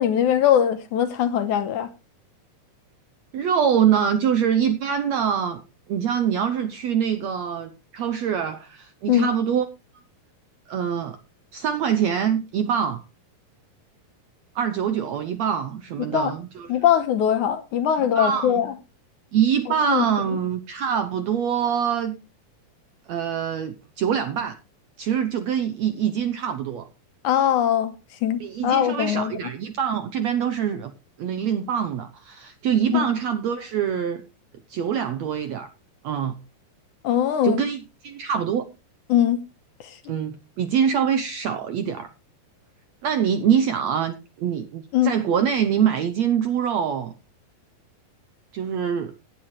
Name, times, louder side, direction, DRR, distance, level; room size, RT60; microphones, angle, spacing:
voice 1, 0.0-1.9 9.1-9.3 16.0-16.3 16.7-18.7 19.9-20.1 27.2-28.0 28.2-29.3 32.9-33.1 37.0-37.6 39.1-39.4 39.8-40.0 44.9-45.1, left 10 dB, 70° left, 2.1 m, -21 dB
voice 2, 3.3-5.6 5.9-9.6 10.7-11.2 11.5-13.0 14.5-16.7 18.2-18.6 19.3-22.2 23.1-24.5 25.0-26.9 28.4-30.9 31.2-34.2 34.7-35.7 36.0-36.3 37.4-38.6 40.1-42.1 43.0-47.1 48.5-49.1, right 8 dB, 75° right, 1.6 m, -24 dB
16.5 x 10.0 x 3.2 m
omnidirectional pair, 4.1 m